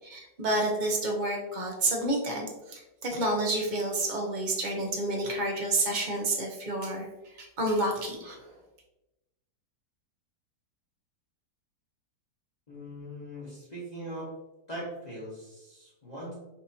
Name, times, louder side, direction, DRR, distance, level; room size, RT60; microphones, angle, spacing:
voice 1, 0.1-8.5, right 1 dB, 50° right, 0 dB, 0.5 m, -29 dB
voice 2, 12.7-14.3 14.7-16.3, equal, 25° left, -7 dB, 1.1 m, -40 dB
5.8 x 2.8 x 2.8 m, 0.97 s
omnidirectional pair, 1.9 m